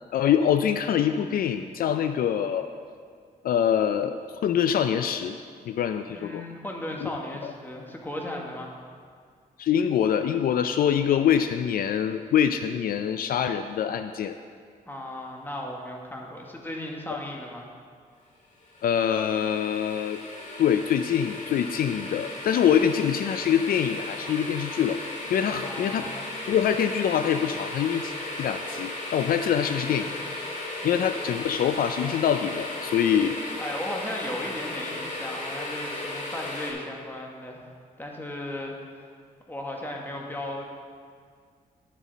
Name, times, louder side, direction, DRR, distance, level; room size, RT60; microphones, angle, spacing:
voice 1, 0.1-2.7 3.4-5.4 5.7-6.4 7.0-7.1 7.4-7.5 9.6-14.3 18.8-20.2 20.6-25.0 25.3-26.1 26.5-30.1 30.8-33.4, left 8 dB, 75° left, 9 dB, 0.4 m, -24 dB
voice 2, 6.1-8.7 14.8-17.7 25.5-26.2 29.6-30.2 30.8-31.2 33.6-37.7 38.0-39.1 39.5-40.7, left 1 dB, 15° left, -1 dB, 1.6 m, -36 dB
sound 1, 18.6-36.7, left 2 dB, 55° left, 2.1 m, -36 dB
11.5 x 7.4 x 4.1 m, 2.1 s
cardioid pair, 85°, 15 cm